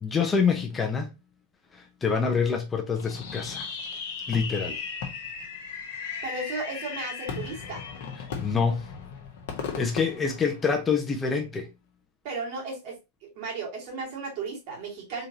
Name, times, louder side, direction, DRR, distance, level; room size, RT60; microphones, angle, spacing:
voice 1, 0.0-1.1 1.7-3.7 4.3-4.8 8.4-8.9 9.8-11.7, left 5 dB, 15° left, 0.8 m, -26 dB
Fireworks, 3.0-11.1, left 5 dB, 50° left, 1.1 m, -36 dB
voice 2, 6.2-7.8 12.2-13.0 13.4-15.3, right 3 dB, 45° right, 2.3 m, -34 dB
3.9 x 3.9 x 2.9 m
figure-of-eight pair, 90°, 0 cm